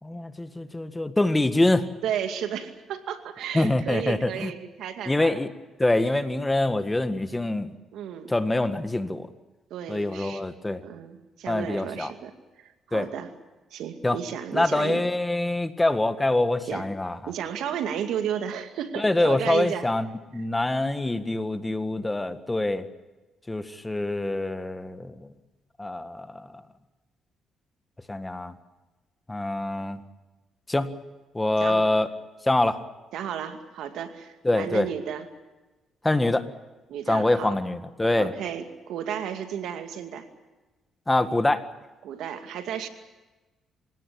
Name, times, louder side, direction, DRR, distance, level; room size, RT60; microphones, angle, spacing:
voice 1, 0.0-1.9 3.5-4.5 5.1-5.5 5.8-7.7 8.3-9.3 9.9-10.8 11.5-12.1 12.9-13.1 14.0-14.2 14.5-17.2 19.0-22.9 23.5-25.3 25.8-26.6 28.1-28.5 29.3-30.0 30.7-30.9 31.3-32.1 32.5-32.8 34.4-34.9 36.0-36.4 37.1-38.3 41.1-41.6, left 2 dB, 15° left, 10 dB, 1.7 m, -25 dB
voice 2, 2.0-5.4 7.9-8.3 9.7-10.4 10.8-13.3 13.7-15.1 16.7-16.9 17.3-19.9 31.6-31.9 33.1-35.3 36.9-37.6 38.2-40.3 42.0-42.9, right 9 dB, 80° right, 7 dB, 2.3 m, -33 dB
27.0 x 17.0 x 8.7 m, 1.2 s
cardioid pair, 75°, 0 cm